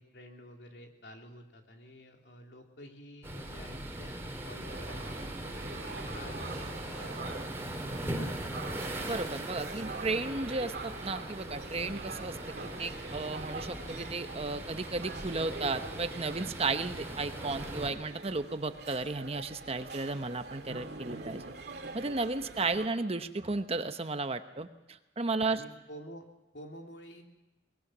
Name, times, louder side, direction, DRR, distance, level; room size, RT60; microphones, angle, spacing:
voice 1, 0.0-5.8 6.1-7.8 25.5-26.3 26.5-27.2, equal, 75° left, 2 dB, 2.9 m, -50 dB
sound 1, 3.2-17.9, right 1 dB, 15° right, 2.8 m, -40 dB
sound 2, 4.7-22.9, right 3 dB, 70° right, 2.2 m, -45 dB
voice 2, 9.1-21.4 21.9-25.6, right 3 dB, 35° right, 9 dB, 1.0 m, -34 dB
23.5 x 20.0 x 6.2 m, 1.0 s
head